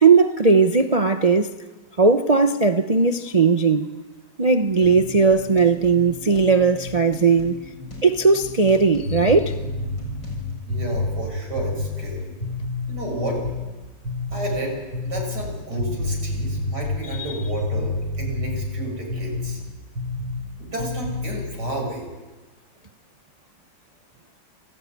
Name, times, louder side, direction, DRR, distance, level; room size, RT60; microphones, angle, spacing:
voice 1, 0.0-1.5 2.0-4.0 4.4-7.6 8.0-9.5 17.1-17.2, right 4 dB, 40° right, 0.5 m, -18 dB
sound 1, 4.8-10.5, left 1 dB, 70° left, 6.9 m, -39 dB
sound 2, 9.1-13.7 14.0-14.6 14.9-19.6 20.0-20.5 20.8-21.5, left 2 dB, 85° right, 4.8 m, -29 dB
voice 2, 10.7-12.3 12.9-13.4 14.3-19.6 20.6-22.1, right 1 dB, 60° right, 7.5 m, -31 dB
28.5 x 17.0 x 9.4 m
omnidirectional pair, 2.0 m